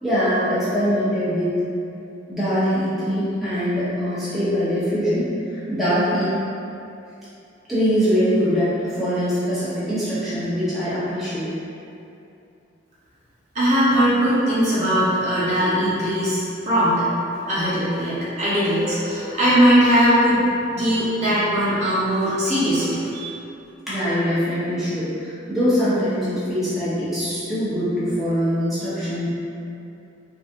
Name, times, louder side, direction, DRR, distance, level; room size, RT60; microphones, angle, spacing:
voice 1, 0.0-1.5 2.3-6.3 7.7-11.5 23.9-29.3, equal, ahead, -14 dB, 0.8 m, -23 dB
voice 2, 13.5-17.1 17.5-23.3, equal, 35° right, -11 dB, 0.8 m, -20 dB
4.0 x 2.6 x 2.5 m, 2.7 s
head